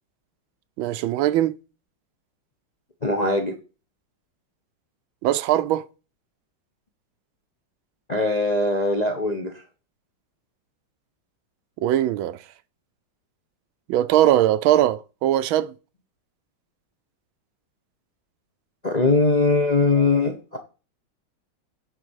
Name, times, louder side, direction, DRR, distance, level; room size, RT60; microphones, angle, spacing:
voice 1, 0.8-1.5 5.2-5.8 11.8-12.4 13.9-15.7, right 12 dB, 80° right, 1.4 m, -20 dB
voice 2, 3.0-3.5 8.1-9.6 18.8-20.6, left 3 dB, 40° left, 0.6 m, -21 dB
9.5 x 4.0 x 6.3 m
omnidirectional pair, 2.2 m